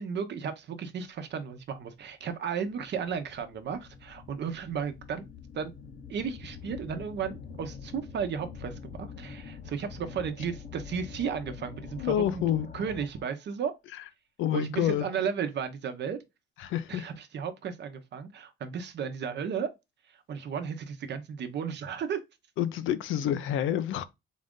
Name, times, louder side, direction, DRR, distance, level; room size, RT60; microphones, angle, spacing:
voice 1, 0.0-5.7 6.1-12.2 12.7-13.7 14.5-16.2 16.9-19.7 20.1-22.2, right 7 dB, 60° right, 0.8 m, -34 dB
sound 1, 2.0-2.1 2.7-13.3, left 6 dB, 45° left, 0.7 m, -45 dB
voice 2, 12.0-12.7 14.4-15.1 16.6-17.1 22.6-24.0, left 11 dB, 85° left, 0.5 m, -28 dB
4.0 x 2.5 x 3.6 m
cardioid pair, 90°, 20 cm